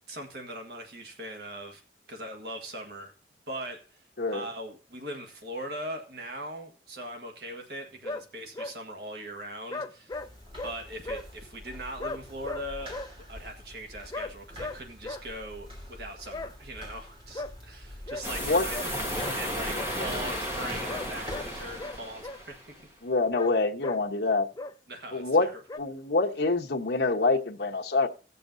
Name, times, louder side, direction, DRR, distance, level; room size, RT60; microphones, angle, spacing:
voice 1, 0.0-1.8 2.1-3.1 3.5-10.3 10.6-22.9 24.9-25.5, right 1 dB, 65° right, 1.5 m, -40 dB
sound 1, 8.0-8.2 8.5-8.7 9.7-10.3 10.6-10.7 11.0-11.2 12.0-13.1 14.1-14.3 14.6-14.8 15.0-15.2 16.3-16.5 17.3-17.5 18.1-18.3 18.7-18.9 19.2-19.4 19.7-19.9 20.9-21.5 21.8-22.4 23.3-23.5 23.8-24.0 24.6-24.7 25.7-25.8, left 2 dB, 20° left, 0.4 m, -36 dB
sound 2, 10.1-21.7, left 1 dB, 30° right, 3.0 m, -46 dB
sound 3, 18.2-22.7, equal, 15° right, 1.7 m, -33 dB
voice 2, 23.0-24.5 25.1-25.5 25.8-28.1, left 3 dB, 75° left, 1.1 m, -26 dB
18.0 x 6.9 x 2.6 m
head